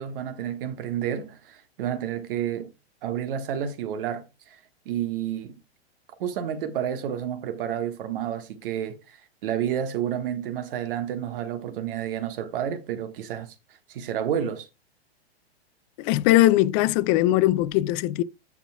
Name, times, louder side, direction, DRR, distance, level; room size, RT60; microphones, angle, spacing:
voice 1, 0.0-2.7 3.0-4.6 4.8-5.6 6.2-13.5 13.9-14.7, right 9 dB, 60° right, 1.4 m, -30 dB
voice 2, 16.0-18.2, left 15 dB, 30° left, 0.4 m, -20 dB
15.0 x 5.8 x 2.3 m
hypercardioid pair, 115°, 32 cm